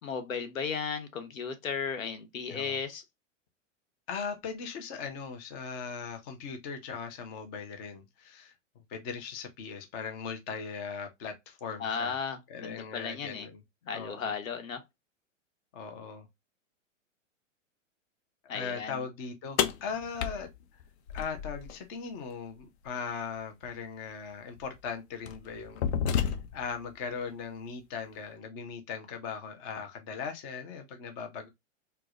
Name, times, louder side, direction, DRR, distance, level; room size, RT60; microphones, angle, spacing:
voice 1, 0.0-3.0 11.8-13.5 13.9-14.8 18.5-19.0, left 6 dB, 85° left, 1.0 m, -35 dB
voice 2, 4.1-8.5 8.9-12.2 12.5-13.6 13.9-14.3 15.7-16.3 18.4-20.5 21.1-31.5, left 6 dB, 20° left, 0.3 m, -39 dB
sound 1, 19.6-21.7 23.6-23.7 24.6-24.8 25.3-26.7, left 8 dB, 55° left, 0.6 m, -31 dB
4.5 x 2.1 x 2.3 m
hypercardioid pair, 135°, 39 cm